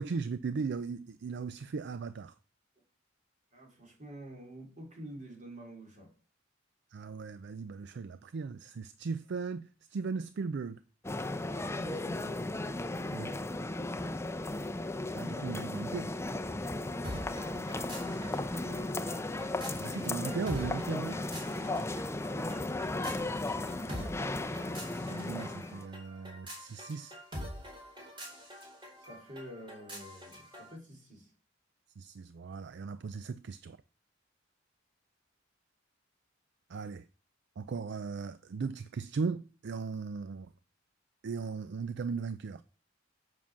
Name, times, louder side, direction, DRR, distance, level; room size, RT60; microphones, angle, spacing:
voice 1, 0.0-2.3 6.9-10.8 13.1-13.3 15.1-16.1 19.8-21.2 25.1-27.2 32.0-33.8 36.7-37.1 37.6-40.5 41.2-42.6, right 5 dB, 60° right, 0.4 m, -37 dB
voice 2, 3.5-6.1 11.2-12.4 18.0-18.9 29.0-31.3, equal, 40° right, 3.6 m, -49 dB
sound 1, 11.0-25.9, left 2 dB, 15° left, 0.6 m, -35 dB
sound 2, 17.0-30.7, equal, 25° right, 4.6 m, -46 dB
7.3 x 5.8 x 7.3 m
head